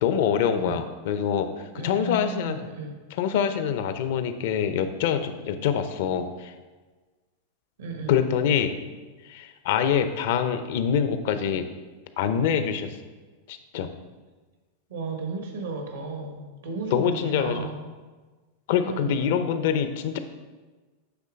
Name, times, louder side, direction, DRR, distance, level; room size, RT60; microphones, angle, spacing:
voice 1, 0.0-2.6 3.2-6.5 8.1-8.7 9.2-11.7 12.2-12.9 13.5-13.9 16.9-17.7 18.7-20.2, left 8 dB, 65° left, 9 dB, 0.6 m, -25 dB
voice 2, 0.5-0.9 1.7-3.0 7.8-8.2 14.9-17.8 18.8-19.4, right 3 dB, 90° right, 3 dB, 1.2 m, -34 dB
8.2 x 3.1 x 5.1 m, 1.3 s
hypercardioid pair, 125°, 0 cm